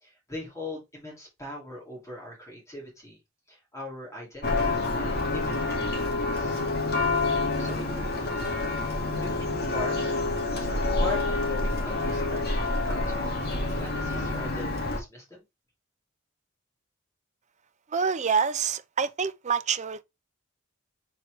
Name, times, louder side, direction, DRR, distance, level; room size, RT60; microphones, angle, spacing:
voice 1, 0.0-3.2 3.5-6.6 7.6-8.6 9.2-10.1 10.5-15.4, left 1 dB, 15° left, 3.2 m, -41 dB
Church bell, 4.4-15.0, left 2 dB, 50° left, 2.0 m, -28 dB
voice 2, 17.9-20.0, right 6 dB, 35° right, 0.6 m, -26 dB
6.6 x 4.7 x 3.2 m
head